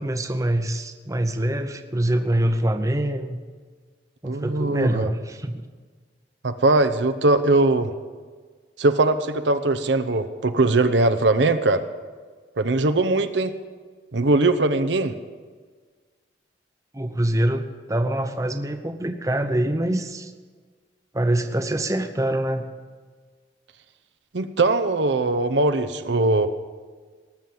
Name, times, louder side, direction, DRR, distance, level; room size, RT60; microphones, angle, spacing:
voice 1, 0.0-3.4 4.2-5.6 16.9-20.3 21.1-22.7, right 1 dB, 20° right, 7 dB, 0.8 m, -24 dB
voice 2, 4.2-5.1 6.4-7.9 8.8-11.8 12.6-13.5 14.1-15.1 24.3-26.5, right 2 dB, 75° right, 10 dB, 0.8 m, -20 dB
19.0 x 7.2 x 7.8 m, 1.5 s
head